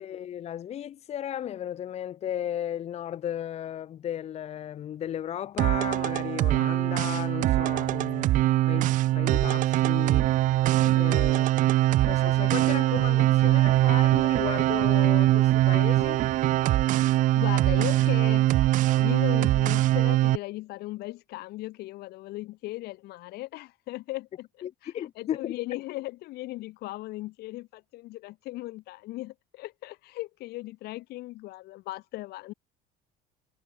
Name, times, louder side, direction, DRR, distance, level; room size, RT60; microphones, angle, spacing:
voice 1, 0.0-10.3 11.0-11.5 12.0-16.3 24.6-25.6, left 10 dB, 35° left, 2.2 m, -35 dB
sound 1, 5.6-20.4, right 15 dB, 45° right, 0.6 m, -22 dB
voice 2, 10.8-11.2 16.7-16.9 17.4-18.7 19.0-24.5 24.8-32.5, left 18 dB, 60° left, 3.2 m, -37 dB
cardioid pair, 165°, 19 cm